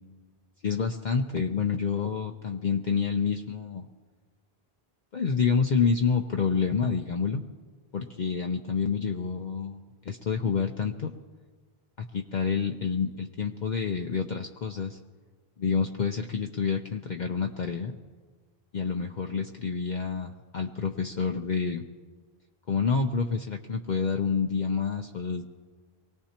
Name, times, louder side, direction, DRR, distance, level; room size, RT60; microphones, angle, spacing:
voice 1, 0.6-3.9 5.1-7.4 7.9-11.1 12.1-15.0 15.6-17.9 18.7-21.8 22.7-25.4, left 5 dB, 55° left, 3 dB, 0.7 m, -28 dB
23.5 x 18.0 x 2.9 m, 1.5 s
omnidirectional pair, 1.0 m